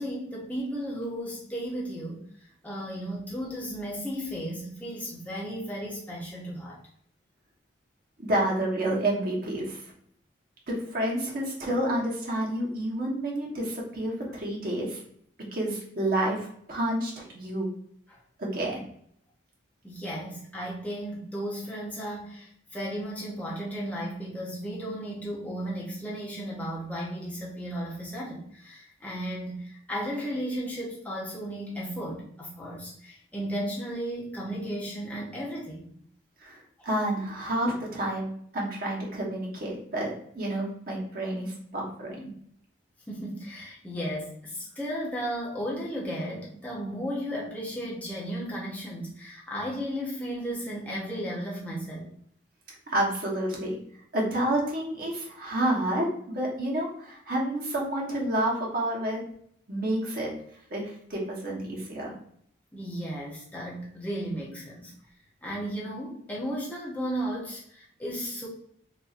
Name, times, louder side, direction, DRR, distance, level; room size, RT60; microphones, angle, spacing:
voice 1, 0.0-2.3 2.6-6.8 18.1-18.2 19.8-35.9 43.1-52.1 62.7-64.9 65.4-68.5, equal, 10° left, -5 dB, 0.7 m, -34 dB
voice 2, 8.2-9.8 10.7-15.0 15.4-17.7 18.4-18.8 36.4-42.3 52.7-53.8 54.1-59.2 59.7-60.3 60.7-62.1, right 1 dB, 45° right, -3 dB, 1.1 m, -29 dB
4.0 x 2.7 x 2.4 m, 0.65 s
head